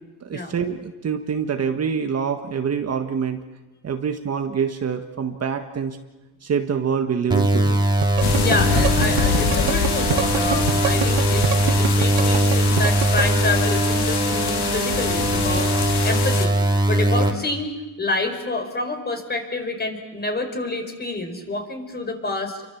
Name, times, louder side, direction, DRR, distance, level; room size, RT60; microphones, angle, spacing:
voice 1, 0.2-3.4 3.8-6.0 6.4-7.8, right 7 dB, 35° right, 5 dB, 1.7 m, -25 dB
sound 1, 7.3-17.3, right 1 dB, 10° right, 3.2 m, -21 dB
sound 2, 8.0-13.2, right 16 dB, 85° right, 1.6 m, -24 dB
sound 3, 8.2-16.5, left 7 dB, 70° left, 2.6 m, -25 dB
voice 2, 8.4-16.5 16.9-17.7 18.0-22.6, left 2 dB, 25° left, 5 dB, 4.9 m, -28 dB
29.0 x 24.5 x 7.3 m, 1.1 s
cardioid pair, 120°, 41 cm